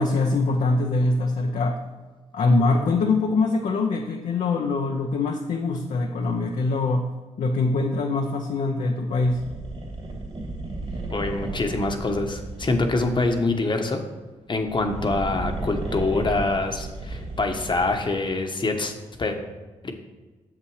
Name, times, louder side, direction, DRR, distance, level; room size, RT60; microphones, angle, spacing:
voice 1, 0.0-1.8 2.3-7.1 7.4-9.4, left 3 dB, 70° left, 1 dB, 0.8 m, -23 dB
sound 1, 9.1-13.6 14.5-18.2, right 2 dB, 45° right, 2.7 m, -34 dB
voice 2, 11.1-14.0 14.5-18.9 19.2-19.4 19.8-19.9, left 3 dB, 40° left, 4 dB, 1.1 m, -25 dB
6.8 x 5.9 x 4.8 m, 1.3 s
supercardioid pair, 55°, 13 cm